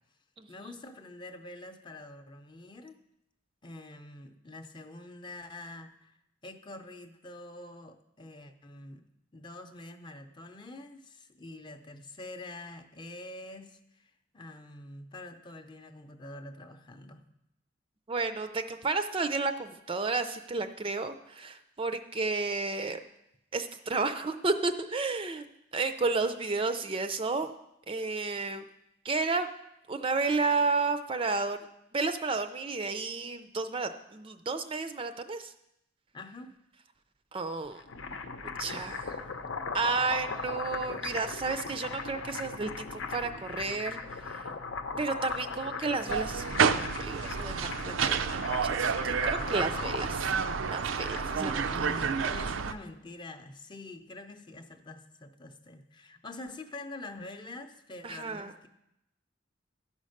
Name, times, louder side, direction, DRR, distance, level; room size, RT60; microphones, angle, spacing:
voice 1, 0.5-3.0 3.6-6.1 6.4-9.0 9.3-17.2 36.1-36.6 49.5-49.9 51.7-58.7, left 2 dB, 25° left, 7 dB, 0.6 m, -46 dB
voice 2, 18.1-23.0 23.5-25.5 25.7-27.5 27.9-28.6 29.0-29.5 29.9-31.7 31.9-35.5 37.3-37.8 38.6-39.2 39.7-44.5 45.0-50.3 50.7-51.6 58.0-58.5, right 3 dB, 30° right, 9 dB, 0.4 m, -32 dB
sound 1, 37.6-51.5, left 4 dB, 80° left, 0.8 m, -39 dB
sound 2, 46.1-52.7, right 6 dB, 90° right, 0.5 m, -30 dB
11.5 x 5.3 x 6.4 m, 0.83 s
head